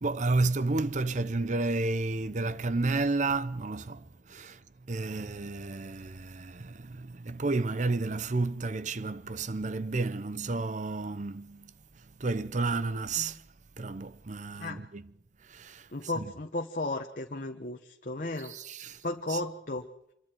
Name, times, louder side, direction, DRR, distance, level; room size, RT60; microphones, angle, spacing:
voice 1, 0.0-11.7 12.2-13.4 13.8-15.1 15.4-16.3 18.4-19.0 19.3-19.4, right 3 dB, 40° right, 0.8 m, -31 dB
voice 2, 14.5-14.8 15.9-18.5 19.0-19.9, left 2 dB, 45° left, 1.3 m, -34 dB
26.5 x 22.5 x 4.6 m
head